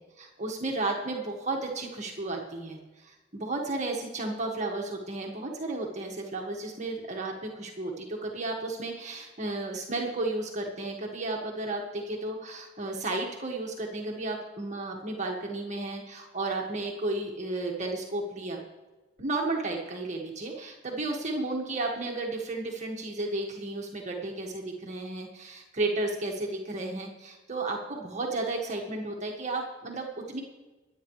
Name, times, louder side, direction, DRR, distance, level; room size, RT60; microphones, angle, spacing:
voice 1, 0.2-18.6 19.2-30.4, right 2 dB, 35° right, 0 dB, 1.8 m, -33 dB
24.0 x 9.5 x 3.2 m, 1.2 s
head